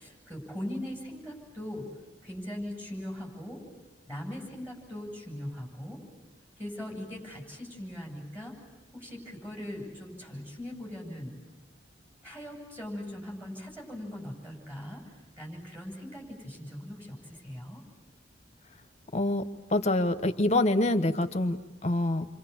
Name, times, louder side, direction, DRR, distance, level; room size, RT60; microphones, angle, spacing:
voice 1, 0.0-1.9 2.2-3.6 4.1-6.0 6.6-8.6 8.9-11.3 12.2-17.8, left 1 dB, 15° right, 0 dB, 7.7 m, -40 dB
voice 2, 19.1-19.4 19.7-22.3, left 1 dB, 35° left, 8 dB, 1.2 m, -26 dB
29.5 x 25.5 x 7.3 m, 1.2 s
head